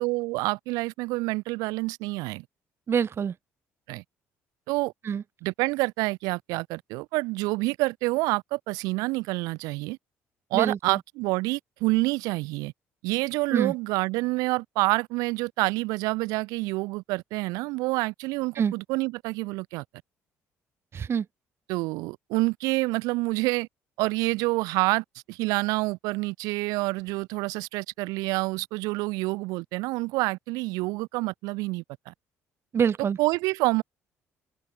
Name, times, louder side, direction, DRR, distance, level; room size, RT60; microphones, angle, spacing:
voice 1, 0.0-2.4 3.9-4.0 4.7-4.9 5.4-10.0 10.5-12.7 13.0-19.8 21.7-23.7 24.0-32.1 33.2-33.8, right 23 dB, 85° right, 2.1 m, -27 dB
voice 2, 2.9-3.3 5.0-5.2 10.5-11.0 13.5-13.7 18.5-18.7 20.9-21.3 32.7-33.2, right 7 dB, 45° right, 0.6 m, -25 dB
open air
supercardioid pair, 70°, 6 cm